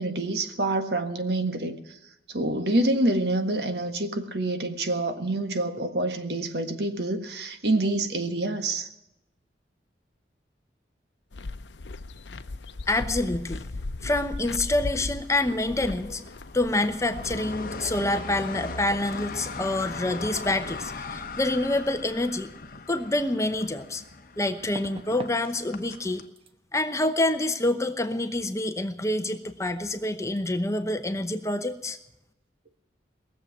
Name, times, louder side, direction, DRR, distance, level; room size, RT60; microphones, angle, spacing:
voice 1, 0.0-2.0 2.3-8.9, right 2 dB, 65° right, 7 dB, 1.6 m, -27 dB
sound 1, 11.3-17.4, left 2 dB, 90° left, 0.7 m, -37 dB
voice 2, 12.9-13.7 14.0-16.3 16.5-22.5 22.9-24.0 24.4-26.2 26.7-32.0, left 2 dB, 15° left, 9 dB, 0.9 m, -27 dB
sound 2, 14.8-26.3, left 3 dB, 55° left, 1.0 m, -39 dB
sound 3, 23.1-23.2 24.6-25.4 25.7-26.1 26.4-26.5 29.5-29.6 29.8-30.1 30.4-30.5, right 1 dB, 35° right, 1.1 m, -41 dB
19.5 x 7.5 x 9.3 m, 0.88 s
head